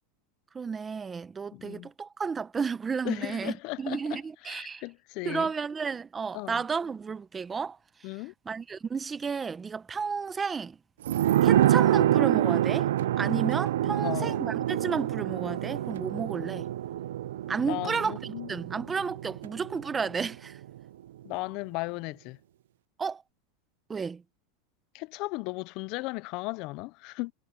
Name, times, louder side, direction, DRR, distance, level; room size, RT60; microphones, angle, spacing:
voice 1, 0.5-4.8 5.2-8.1 8.5-10.8 11.4-12.9 13.2-16.7 17.5-20.6 23.0-23.2 23.9-24.2, right 5 dB, 15° right, 1.0 m, -32 dB
voice 2, 1.5-1.9 3.0-5.5 6.3-6.6 8.0-8.3 13.8-14.4 17.6-18.5 21.2-22.4 24.9-27.3, left 23 dB, 50° left, 0.5 m, -36 dB
sound 1, 11.1-20.3 20.6-20.7, right 12 dB, 85° right, 0.6 m, -26 dB
supercardioid pair, 135°, 0 cm